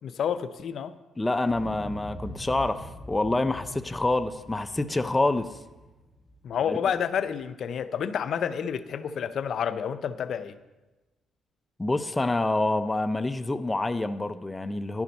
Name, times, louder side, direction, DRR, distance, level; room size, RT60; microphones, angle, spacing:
voice 1, 0.0-0.9 6.4-10.6, left 7 dB, 60° left, 12 dB, 0.5 m, -29 dB
voice 2, 1.2-5.6 6.7-6.8 11.8-15.0, left 2 dB, 15° left, 10 dB, 0.5 m, -27 dB
Explosion, 1.4-7.5 7.8-7.9, equal, 50° right, 2.6 m, -44 dB
11.5 x 7.1 x 5.3 m, 1.1 s
cardioid pair, 90°, 0 cm